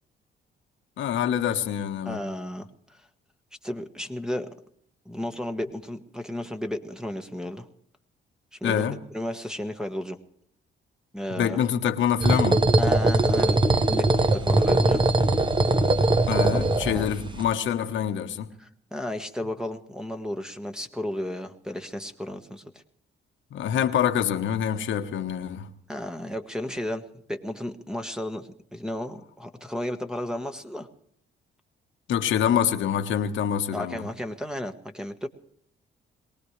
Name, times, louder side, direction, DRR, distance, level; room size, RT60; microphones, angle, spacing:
voice 1, 1.0-2.2 8.6-9.0 11.3-12.6 16.3-18.5 23.5-25.7 32.1-34.1, left 9 dB, 75° left, 1.3 m, -26 dB
voice 2, 2.0-2.7 3.6-4.5 5.0-7.7 8.5-10.2 11.1-11.6 12.8-15.0 16.4-17.0 18.6-22.8 25.9-30.9 33.7-35.3, left 1 dB, 5° right, 1.3 m, -33 dB
sound 1, 12.2-17.4, right 2 dB, 25° right, 1.1 m, -21 dB
22.5 x 18.5 x 3.3 m
cardioid pair, 90°, 20 cm